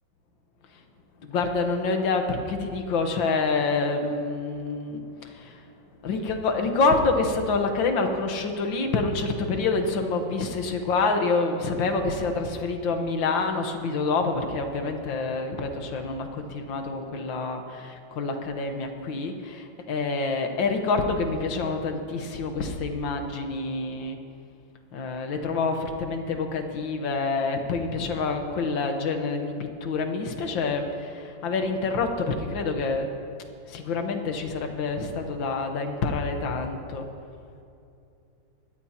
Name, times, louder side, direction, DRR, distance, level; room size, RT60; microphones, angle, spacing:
voice 1, 1.2-5.7 6.0-24.2 24.9-33.1 33.7-37.1, left 3 dB, 75° left, 5 dB, 1.8 m, -27 dB
21.0 x 14.5 x 2.9 m, 2.6 s
omnidirectional pair, 2.2 m